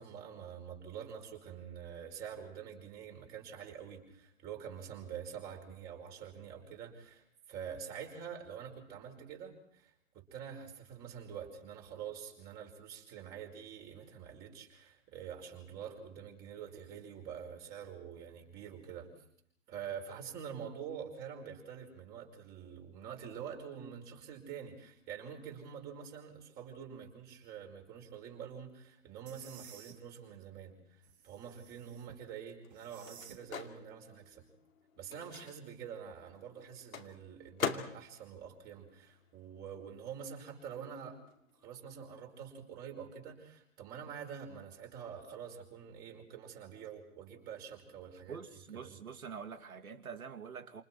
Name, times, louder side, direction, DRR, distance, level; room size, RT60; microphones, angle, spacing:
voice 1, 0.0-19.1 19.7-34.5 35.0-41.2 41.6-49.0, right 8 dB, 20° right, 2 dB, 5.1 m, -46 dB
sound 1, 29.3-29.9 31.0-32.2 32.7-33.4, right 8 dB, 50° right, 3.3 m, -55 dB
Microwave oven, 31.7-39.8 40.0-42.0, left 6 dB, 70° left, 2.7 m, -44 dB
voice 2, 48.3-50.8, right 6 dB, 75° right, 8 dB, 2.5 m, -45 dB
29.0 x 27.5 x 4.6 m, 0.67 s
hypercardioid pair, 140°, 43 cm